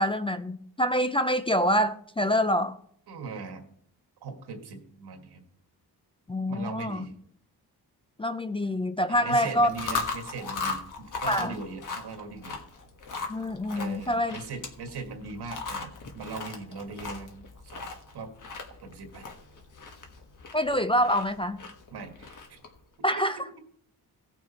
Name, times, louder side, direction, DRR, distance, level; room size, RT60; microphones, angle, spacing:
voice 1, 0.0-2.8 6.3-7.1 8.2-9.7 11.3-11.6 13.3-14.4 20.5-21.6 23.0-23.4, equal, 15° left, 11 dB, 0.3 m, -26 dB
voice 2, 3.1-3.6 4.2-5.4 6.5-7.1 9.1-12.6 13.7-17.3 17.6-17.9 18.1-18.3 18.8-19.2 21.9-22.6 23.2-23.3, right 4 dB, 85° right, 5 dB, 1.9 m, -39 dB
Chewing mastication, 9.6-22.8, left 4 dB, 50° left, 1.4 m, -38 dB
16.5 x 6.1 x 4.3 m, 0.65 s
wide cardioid pair, 135°, 38 cm